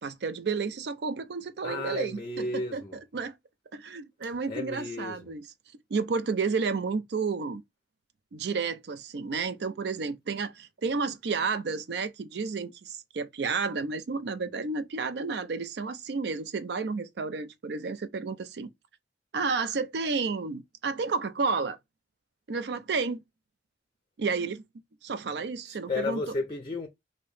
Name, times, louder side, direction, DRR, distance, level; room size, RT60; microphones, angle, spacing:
voice 1, 0.0-2.8 3.1-3.3 3.7-5.4 5.9-7.6 8.3-18.7 19.3-21.8 22.5-23.2 24.2-24.6 25.0-26.2, right 4 dB, 65° right, 0.4 m, -31 dB
voice 2, 1.6-3.0 4.5-5.4 25.7-26.9, left 3 dB, 25° left, 0.5 m, -33 dB
2.9 x 2.7 x 3.2 m
head